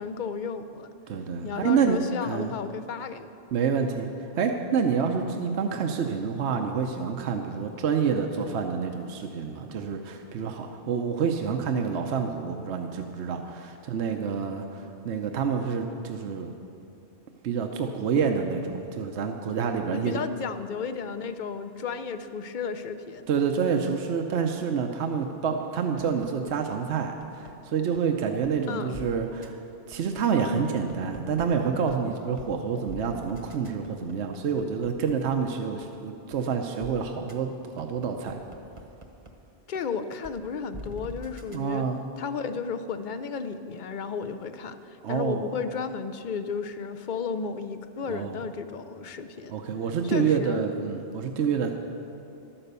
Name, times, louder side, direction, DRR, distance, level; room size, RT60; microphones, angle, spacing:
voice 1, 0.0-0.9 1.4-3.3 19.9-23.2 28.7-29.0 39.7-41.9 42.2-49.5 50.1-50.6, left 5 dB, 50° left, 10 dB, 0.7 m, -33 dB
voice 2, 1.1-2.0 2.2-2.6 3.5-4.1 4.3-16.5 17.4-20.2 23.3-29.6 29.9-38.4 41.5-42.0 45.0-45.4 48.1-48.4 49.5-51.7, right 6 dB, 75° right, 4 dB, 1.0 m, -28 dB
sound 1, 26.0-27.5 27.9-28.0 28.4-28.5 28.9-29.1 29.4-29.5 29.9-31.4 31.9-32.0 32.4-32.5 32.9-35.4 35.8-35.9 36.3-36.4 36.8-36.9 37.3-37.4 37.8-39.3 39.7-39.8 40.2-40.3 40.7-41.6, right 1 dB, 30° right, 1.0 m, -43 dB
12.0 x 10.0 x 6.8 m, 2.7 s
omnidirectional pair, 1.1 m